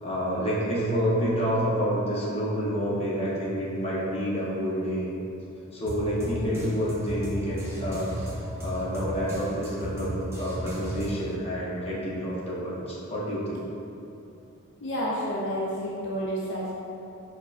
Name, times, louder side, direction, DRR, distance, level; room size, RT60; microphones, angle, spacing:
voice 1, 0.0-5.1 5.7-8.3 8.6-13.6, equal, 30° left, -6 dB, 0.9 m, -28 dB
sound 1, 5.9-11.4, equal, 10° right, 0.7 m, -35 dB
voice 2, 14.8-16.7, equal, 60° left, -5 dB, 0.5 m, -30 dB
4.7 x 4.6 x 2.4 m, 2.7 s
head